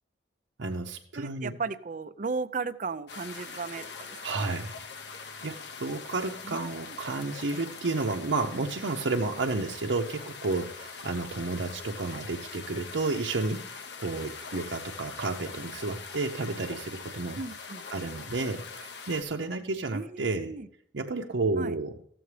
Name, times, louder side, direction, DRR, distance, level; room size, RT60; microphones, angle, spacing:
voice 1, 0.6-1.6 4.2-4.7 5.4-17.4 17.9-20.5 20.9-22.0, right 3 dB, 80° right, 1 dB, 0.7 m, -31 dB
voice 2, 1.2-4.4 6.4-7.0 17.4-17.8 19.9-20.7 21.6-21.7, right 4 dB, 45° right, 13 dB, 0.5 m, -36 dB
sound 1, 3.1-19.2, left 5 dB, 70° left, 0.9 m, -43 dB
14.5 x 7.7 x 3.3 m, 0.70 s
head